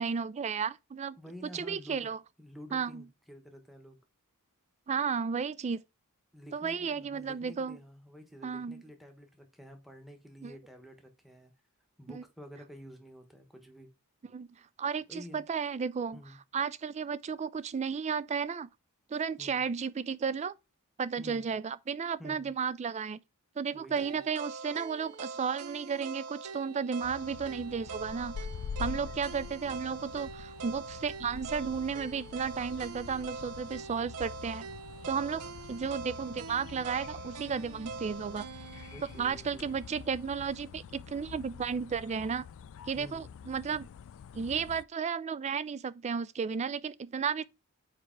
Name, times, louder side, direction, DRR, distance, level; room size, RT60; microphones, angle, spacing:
voice 1, 0.0-1.2 1.5-2.2 2.7-3.0 4.9-5.8 6.5-7.8 8.4-8.8 10.4-10.5 12.1-12.2 14.3-14.5 14.8-16.2 16.5-18.7 19.1-20.5 21.0-23.2 23.6-28.3 28.8-34.7 35.1-35.4 35.7-38.5 38.7-38.9 39.2-42.4 42.9-43.9 44.3-47.4, right 6 dB, 30° right, 0.3 m, -33 dB
voice 2, 1.2-2.1 2.4-4.0 6.3-11.5 12.0-13.9 15.1-15.4 16.1-16.4 19.4-19.6 21.2-21.5 22.2-22.5 23.7-24.2 28.9-29.2 38.8-39.7 42.9-43.3, equal, ahead, 1.2 m, -50 dB
sound 1, 24.0-40.1, right 5 dB, 80° right, 0.6 m, -44 dB
sound 2, 27.0-44.8, left 6 dB, 65° left, 0.3 m, -46 dB
4.9 x 4.7 x 4.5 m
head